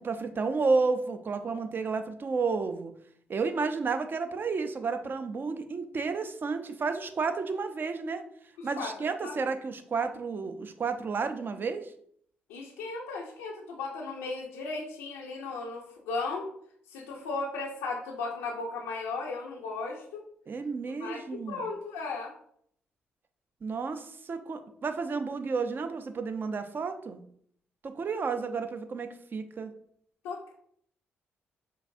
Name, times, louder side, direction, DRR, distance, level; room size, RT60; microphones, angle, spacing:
voice 1, 0.0-2.9 3.3-8.2 8.6-11.9 20.5-21.6 23.6-27.2 27.8-29.7, right 4 dB, 45° right, 8 dB, 0.4 m, -31 dB
voice 2, 8.6-8.9 9.2-9.5 12.5-16.5 16.9-20.3 20.8-21.2 21.5-22.3 30.2-30.5, left 3 dB, 80° left, -2 dB, 0.4 m, -36 dB
4.6 x 2.5 x 2.5 m, 0.65 s
hypercardioid pair, 40°, 5 cm